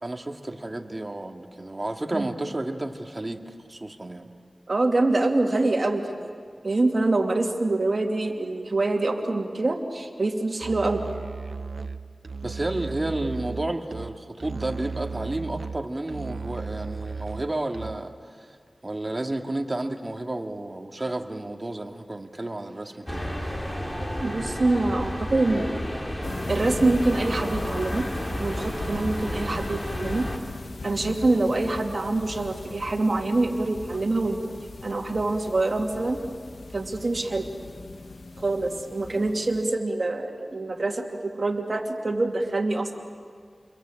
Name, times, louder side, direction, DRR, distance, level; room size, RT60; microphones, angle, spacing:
voice 1, 0.0-4.3 12.4-18.1 18.8-23.3, right 2 dB, 35° right, 3 dB, 2.1 m, -31 dB
voice 2, 4.7-6.3 6.6-11.0 24.2-25.8 26.5-28.1 28.4-30.3 30.8-34.6 34.8-36.2 36.7-37.5 38.4-42.9, right 2 dB, 55° right, 3 dB, 2.8 m, -25 dB
Musical instrument, 10.6-18.2, right 5 dB, 85° right, 0.7 m, -36 dB
sound 1, 23.1-30.4, equal, 20° left, 3.5 m, -32 dB
sound 2, 26.2-39.7, left 3 dB, 75° left, 1.2 m, -39 dB
29.5 x 22.5 x 9.0 m, 2.1 s
wide cardioid pair, 60°, 0 cm